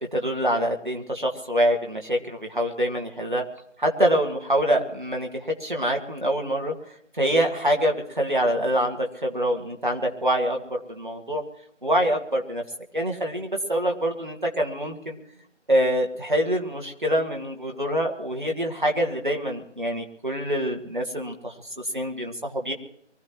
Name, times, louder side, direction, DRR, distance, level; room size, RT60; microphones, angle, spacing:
voice 1, 0.1-3.4 3.8-6.7 7.2-11.4 11.8-12.6 12.9-15.2 15.7-21.5 21.9-22.7, equal, 40° right, 2 dB, 2.1 m, -25 dB
24.0 x 15.0 x 3.0 m, 0.74 s
figure-of-eight pair, 170°, 37 cm